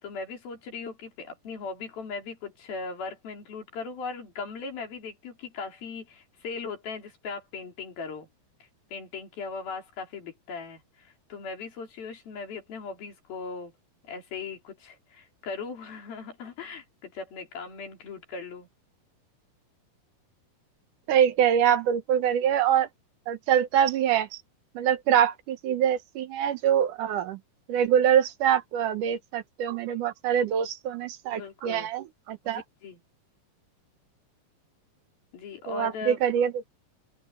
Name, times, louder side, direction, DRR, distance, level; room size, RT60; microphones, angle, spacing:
voice 1, 0.0-8.3 8.9-13.7 14.1-18.7 25.1-25.2 31.3-31.9 32.5-33.0 35.3-36.2, left 4 dB, 90° left, 5.9 m, -38 dB
voice 2, 21.1-22.9 23.3-24.4 24.7-27.4 27.7-32.6 35.7-36.6, right 9 dB, 70° right, 2.4 m, -24 dB
open air
omnidirectional pair, 4.1 m